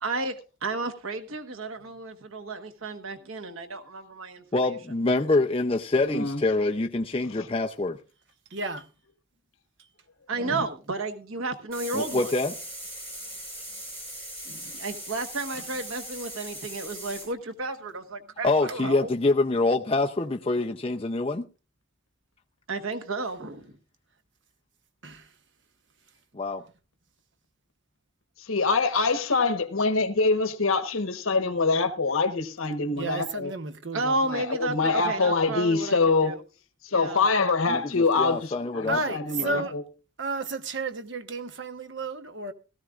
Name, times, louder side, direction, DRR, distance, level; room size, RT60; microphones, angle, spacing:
voice 1, 0.0-4.7 10.3-12.3 14.7-19.1 22.7-23.6 33.9-36.4 36.9-37.3, right 3 dB, 90° right, 1.3 m, -32 dB
voice 2, 4.5-8.0 11.9-12.5 18.4-21.4 26.3-26.6 37.7-39.2, left 2 dB, 25° left, 0.5 m, -25 dB
voice 3, 6.0-6.4 7.3-7.5 10.4-10.6 28.4-33.5 34.3-36.3 36.8-39.8, left 4 dB, 85° left, 1.2 m, -25 dB
voice 4, 8.5-8.9 25.0-25.3 33.0-34.2 38.9-39.7 40.2-42.5, right 3 dB, 60° right, 1.0 m, -32 dB
sound 1, 11.7-17.3, right 1 dB, 35° right, 7.6 m, -39 dB
17.0 x 14.0 x 2.4 m
head